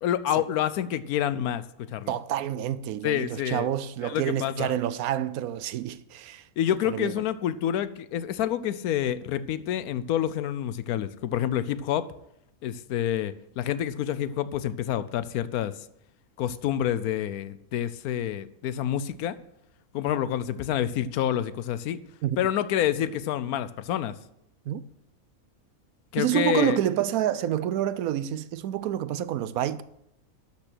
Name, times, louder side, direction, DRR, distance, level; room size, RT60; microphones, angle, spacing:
voice 1, 0.0-2.1 3.0-3.7 4.0-4.7 6.6-12.1 12.6-15.7 16.4-19.4 19.9-22.0 22.4-24.1 26.1-26.8, left 11 dB, 90° left, 1.1 m, -28 dB
voice 2, 2.1-6.5 6.9-7.1 22.2-22.4 24.7-24.8 26.2-29.8, right 11 dB, 80° right, 1.0 m, -28 dB
12.0 x 5.9 x 6.1 m
omnidirectional pair, 1.5 m